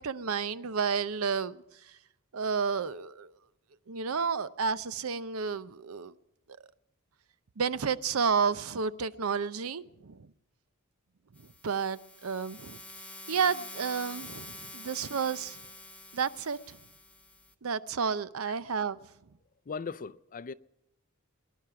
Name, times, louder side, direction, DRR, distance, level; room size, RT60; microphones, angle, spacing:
voice 1, 0.0-1.6 2.3-3.3 3.9-6.1 7.6-10.2 11.6-12.8 13.3-15.6 16.1-16.8 17.6-19.0, right 6 dB, 85° right, 0.7 m, -31 dB
sound 1, 11.4-17.5, left 2 dB, 5° left, 0.9 m, -47 dB
voice 2, 19.7-20.5, left 5 dB, 40° left, 0.5 m, -38 dB
22.5 x 11.0 x 5.8 m
head